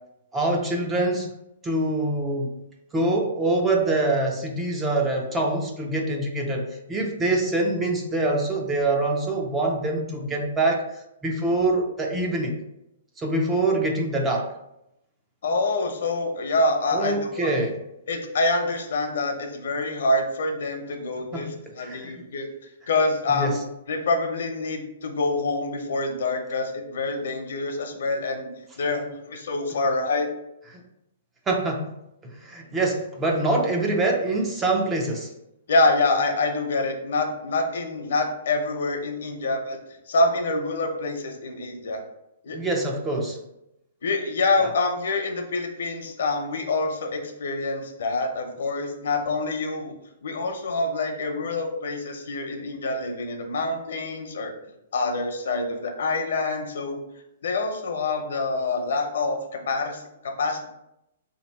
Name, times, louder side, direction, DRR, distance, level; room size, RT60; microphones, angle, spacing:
voice 1, 0.3-1.3 1.6-2.6 2.9-12.6 13.2-14.5 16.9-17.8 21.3-21.5 21.8-22.2 23.3-23.6 30.7-30.8 31.5-32.0 32.2-35.3 42.5-43.4 44.6-44.7, right 2 dB, 10° right, 1 dB, 0.4 m, -25 dB
voice 2, 15.4-17.5 18.1-22.5 22.9-23.6 23.9-30.3 35.7-39.8 40.1-42.0 42.4-42.6 44.0-49.9 50.2-54.5 54.9-57.0 57.4-60.7, left 2 dB, 70° left, 4 dB, 0.8 m, -26 dB
4.0 x 2.9 x 4.1 m, 0.85 s
hypercardioid pair, 170°, 0 cm